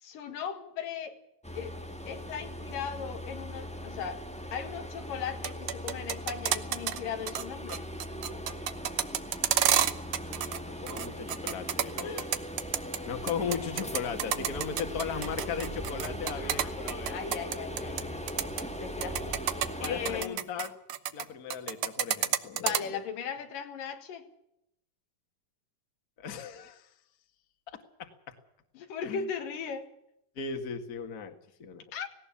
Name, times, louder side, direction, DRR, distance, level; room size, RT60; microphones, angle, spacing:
voice 1, 0.0-1.2 1.6-1.8 2.1-4.2 4.5-7.9 12.0-12.3 14.3-14.5 16.3-16.8 17.1-18.3 18.7-19.4 19.8-20.4 22.6-24.3 28.8-29.9 31.9-32.1, left 7 dB, 80° left, 7 dB, 3.5 m, -38 dB
sound 1, 1.4-20.2, equal, 5° left, 0.5 m, -40 dB
sound 2, 5.3-7.0 7.3-7.4 7.7-10.6 10.9-13.0 13.3-18.0 18.3-18.6 19.0-21.2 21.5-22.8, right 10 dB, 75° right, 1.2 m, -29 dB
voice 2, 10.8-12.3 13.1-17.2 19.8-20.7 21.1-23.0 26.2-26.9 27.7-28.3 29.0-29.3 30.4-31.8, left 6 dB, 35° left, 6 dB, 1.9 m, -37 dB
18.5 x 18.0 x 8.5 m, 0.79 s
omnidirectional pair, 3.8 m